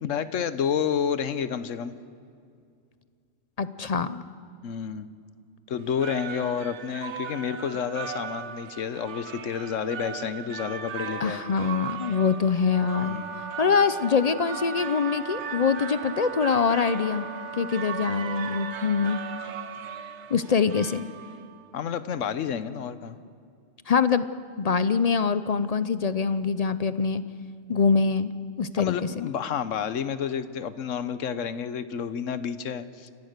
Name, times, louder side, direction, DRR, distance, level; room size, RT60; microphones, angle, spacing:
voice 1, 0.0-1.9 4.6-5.1 5.7-11.7 13.1-13.4 21.7-23.2 28.8-33.1, left 7 dB, 80° left, 13 dB, 1.2 m, -30 dB
voice 2, 3.6-4.2 11.2-13.2 13.6-17.3 17.6-19.2 20.3-21.0 23.9-24.3 24.6-27.2 27.7-28.3 28.6-29.3, left 5 dB, 50° left, 13 dB, 0.5 m, -24 dB
sound 1, 5.8-21.7, right 7 dB, 65° right, 1.2 m, -38 dB
Wind instrument woodwind instrument, 12.6-19.6, right 5 dB, 45° right, 0.4 m, -38 dB
29.0 x 15.0 x 6.6 m, 2.3 s
omnidirectional pair, 1.3 m